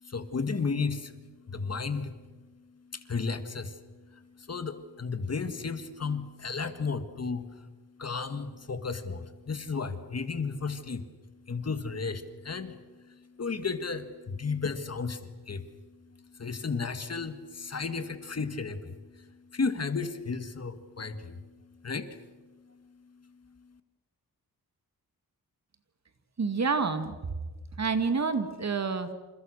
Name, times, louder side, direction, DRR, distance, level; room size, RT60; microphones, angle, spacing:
voice 1, 0.0-7.7 8.0-23.8, left 4 dB, 45° left, 10 dB, 1.8 m, -34 dB
voice 2, 26.4-27.2 27.8-29.1, right 4 dB, 45° right, 9 dB, 2.1 m, -28 dB
28.5 x 28.0 x 6.5 m, 1.3 s
wide cardioid pair, 150°, 36 cm